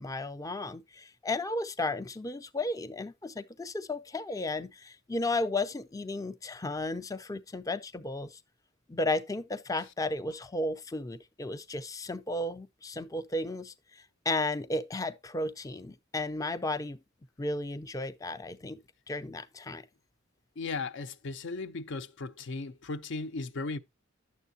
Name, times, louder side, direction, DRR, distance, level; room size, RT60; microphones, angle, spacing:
voice 1, 0.0-8.4 8.9-17.0 17.4-18.8 19.1-19.9, left 2 dB, 15° left, 0.4 m, -34 dB
voice 2, 20.6-23.8, left 3 dB, 65° left, 0.6 m, -36 dB
10.0 x 7.1 x 2.6 m
head